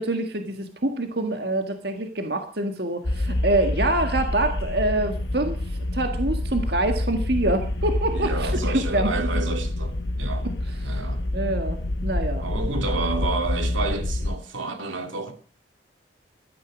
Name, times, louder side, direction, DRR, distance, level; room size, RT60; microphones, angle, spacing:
voice 1, 0.0-9.3 10.4-10.5 10.8-11.0 11.3-12.4, right 2 dB, 55° right, 1.8 m, -26 dB
sound 1, 3.0-14.4, left 1 dB, 65° left, 1.2 m, -27 dB
voice 2, 8.1-10.5 10.8-11.2 12.4-15.3, right 3 dB, 90° right, 2.7 m, -30 dB
17.0 x 12.5 x 6.2 m
head